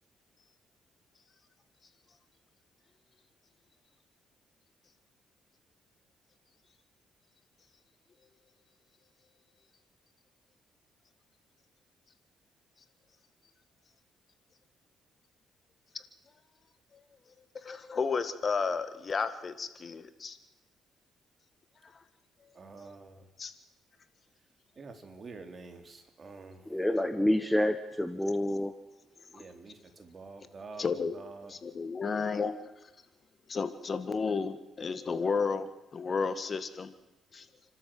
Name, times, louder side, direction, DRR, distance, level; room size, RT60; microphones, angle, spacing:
voice 1, 17.5-20.4 21.8-22.0 23.4-23.5 30.8-31.1 31.5-32.6 32.8-32.9 33.5-36.9 37.3-37.5, left 5 dB, 40° left, 11 dB, 1.7 m, -32 dB
voice 2, 22.5-23.3 24.8-26.7 28.5-28.6 29.0-31.5, right 4 dB, 40° right, 6 dB, 3.7 m, -48 dB
voice 3, 26.7-28.8, left 1 dB, 5° left, 9 dB, 1.3 m, -28 dB
30.0 x 13.0 x 7.7 m, 1.0 s
cardioid pair, 90°, 0 cm